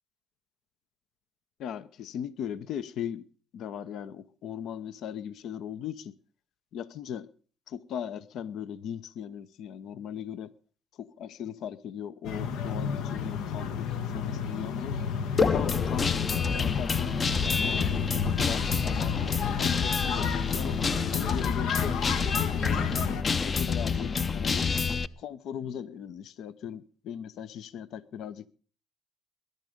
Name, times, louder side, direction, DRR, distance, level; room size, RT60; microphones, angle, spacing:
voice 1, 1.6-3.3 3.5-6.2 6.7-7.3 7.7-10.5 10.9-15.0 15.5-16.1 16.5-19.2 19.5-20.8 21.1-22.0 22.5-24.7 25.2-28.5, left 8 dB, 70° left, 15 dB, 0.7 m, -38 dB
sound 1, 12.2-23.2, left 7 dB, 85° left, 1.1 m, -32 dB
Guitar, 15.4-25.1, left 5 dB, 35° left, 0.6 m, -28 dB
20.0 x 11.0 x 5.1 m, 0.41 s
cardioid pair, 110°, 0 cm